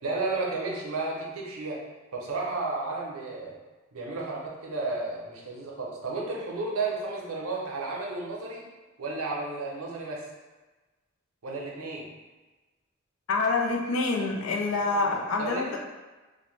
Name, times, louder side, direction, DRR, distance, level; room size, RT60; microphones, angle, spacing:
voice 1, 0.0-1.8 2.1-3.6 3.9-8.7 9.0-10.3 11.4-12.1 14.9-15.8, right 3 dB, 85° right, -2 dB, 0.6 m, -33 dB
voice 2, 13.3-15.8, left 3 dB, 75° left, 0 dB, 0.5 m, -26 dB
2.5 x 2.1 x 3.1 m, 1.2 s
head